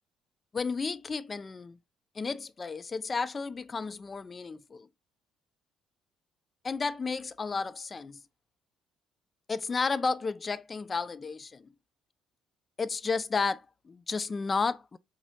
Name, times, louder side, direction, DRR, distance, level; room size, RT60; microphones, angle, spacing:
voice 1, 0.5-1.8 2.2-4.9 6.6-8.2 9.5-11.7 12.8-15.0, left 4 dB, 30° left, 0.3 m, -32 dB
3.8 x 3.0 x 2.5 m
figure-of-eight pair, 45°, 0 cm